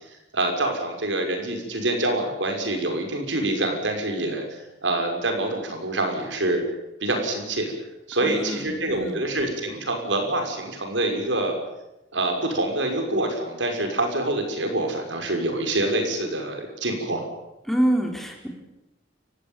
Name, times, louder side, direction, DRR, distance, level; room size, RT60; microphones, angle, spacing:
voice 1, 0.0-6.6 7.0-7.7 8.1-11.6 12.1-17.3, right 2 dB, 75° right, 4 dB, 6.0 m, -26 dB
voice 2, 8.2-9.2 17.7-18.5, right 1 dB, ahead, 2 dB, 4.0 m, -26 dB
29.5 x 16.0 x 9.2 m, 0.96 s
head